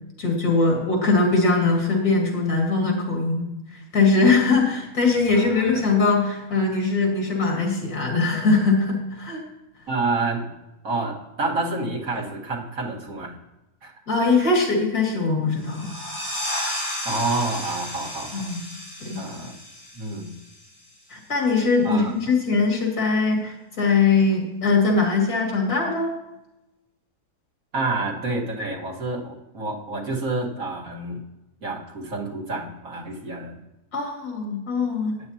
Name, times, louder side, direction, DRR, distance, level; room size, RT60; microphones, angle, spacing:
voice 1, 0.2-9.4 14.1-15.9 18.3-18.6 19.0-19.2 21.1-26.1 33.9-35.2, left 3 dB, 85° left, 0 dB, 2.8 m, -21 dB
voice 2, 5.3-5.8 9.9-10.5 10.8-13.4 13.8-13.9 17.0-18.5 19.2-19.6 19.9-20.4 21.8-22.0 27.7-31.3 31.6-33.6, right 3 dB, 65° right, -2 dB, 2.1 m, -28 dB
sound 1, 15.6-20.9, left 1 dB, 20° left, 3.6 m, -33 dB
13.0 x 9.6 x 2.8 m, 0.96 s
omnidirectional pair, 1.6 m